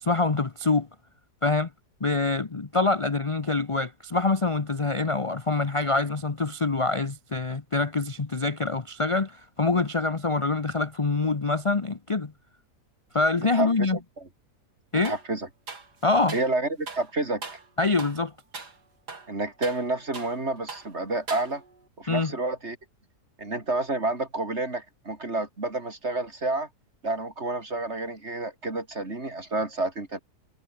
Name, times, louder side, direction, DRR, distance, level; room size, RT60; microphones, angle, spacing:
voice 1, 0.0-0.9 1.4-1.7 2.0-12.3 13.1-14.0 14.9-15.2 16.0-16.4 17.8-18.3 22.1-22.3, left 3 dB, 25° left, 0.8 m, -25 dB
voice 2, 13.5-14.0 15.0-15.5 16.3-17.6 19.3-21.6 22.0-22.8 23.4-26.7 27.0-30.2, right 2 dB, 40° right, 4.2 m, -29 dB
sound 1, 15.0-15.3 15.7-16.5 16.9-17.1 17.4-17.7 18.0-18.2 18.5-18.8 19.1-20.4 20.7-20.9 21.3-21.8, right 4 dB, 75° right, 3.9 m, -40 dB
omnidirectional pair, 1.8 m